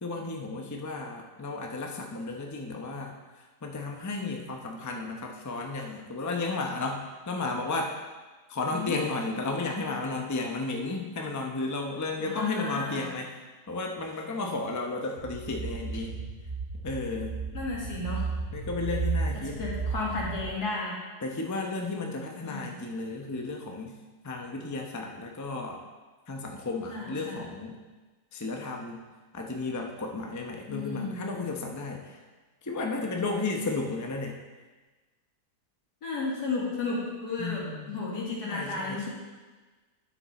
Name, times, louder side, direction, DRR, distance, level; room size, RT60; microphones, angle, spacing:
voice 1, 0.0-3.1 3.6-7.9 8.5-13.3 13.7-16.2 16.8-17.4 18.5-19.6 21.2-24.0 24.2-25.8 26.3-27.8 28.3-29.0 29.3-32.2 32.6-34.4 37.4-38.0 38.5-39.1, left 3 dB, 20° left, 1 dB, 0.5 m, -33 dB
voice 2, 12.2-13.1 17.5-18.2 19.4-21.0 22.4-22.7 26.9-27.4 30.7-31.2 36.0-39.1, left 3 dB, 85° left, -4 dB, 2.6 m, -33 dB
sound 1, 15.2-20.5, right 4 dB, 45° right, 0.6 m, -34 dB
9.6 x 7.3 x 4.2 m, 1.3 s
omnidirectional pair, 1.7 m